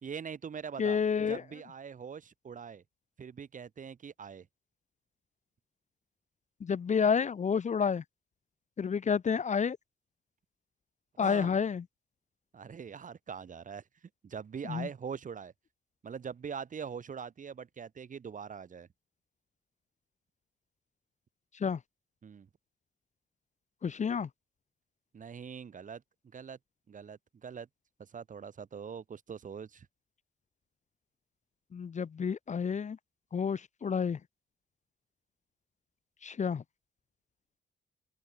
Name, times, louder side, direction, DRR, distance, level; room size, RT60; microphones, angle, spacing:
voice 1, 0.0-2.8 3.2-4.5 11.2-11.6 12.5-13.8 14.2-15.5 16.0-18.9 22.2-22.5 25.1-26.0 26.3-26.6 26.9-27.7 28.0-29.9, right 6 dB, 40° right, 1.5 m, -43 dB
voice 2, 0.8-1.4 6.6-8.0 8.8-9.8 11.2-11.8 14.7-14.9 21.6-21.8 23.8-24.3 31.7-33.0 33.3-34.2 36.2-36.6, left 6 dB, 40° left, 1.0 m, -29 dB
open air
cardioid pair, 115°, 19 cm